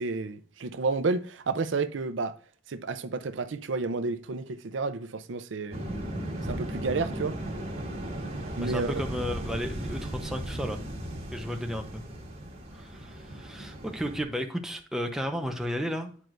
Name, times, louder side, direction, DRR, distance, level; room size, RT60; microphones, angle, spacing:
voice 1, 0.0-2.3 2.7-5.8 6.5-7.4 8.6-9.0, right 3 dB, 80° right, 0.5 m, -31 dB
sound 1, 5.7-14.2, right 1 dB, 35° right, 1.7 m, -36 dB
voice 2, 8.6-10.8 11.3-12.0 12.7-16.1, equal, 5° right, 0.8 m, -33 dB
9.7 x 4.5 x 2.5 m
head